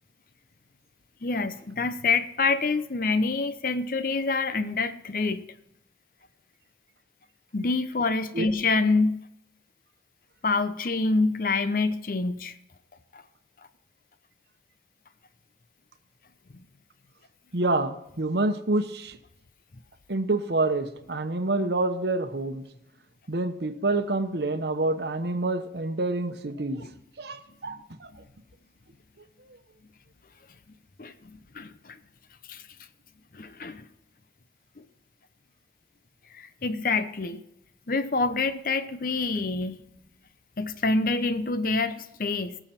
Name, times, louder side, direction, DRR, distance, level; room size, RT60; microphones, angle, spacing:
voice 1, 1.2-5.4 7.5-9.2 10.4-12.5 13.1-13.2 31.0-32.0 32.5-32.6 33.3-33.8 36.3-37.4 37.9-39.8 40.6-42.6, left 3 dB, 50° left, 12 dB, 0.7 m, -26 dB
voice 2, 17.5-19.2 20.1-22.6 23.3-26.8 27.2-28.1, right 2 dB, 70° right, 9 dB, 1.0 m, -27 dB
18.5 x 7.0 x 4.3 m, 0.82 s
head